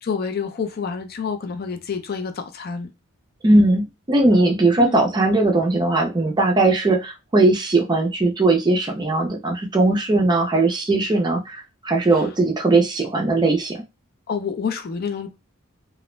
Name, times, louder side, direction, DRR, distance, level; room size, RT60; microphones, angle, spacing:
voice 1, 0.0-2.9 4.8-5.1 12.1-12.2 14.3-15.3, left 6 dB, 45° left, 0.4 m, -28 dB
voice 2, 3.4-13.8, right 2 dB, 20° right, 0.4 m, -19 dB
2.4 x 2.0 x 3.1 m
head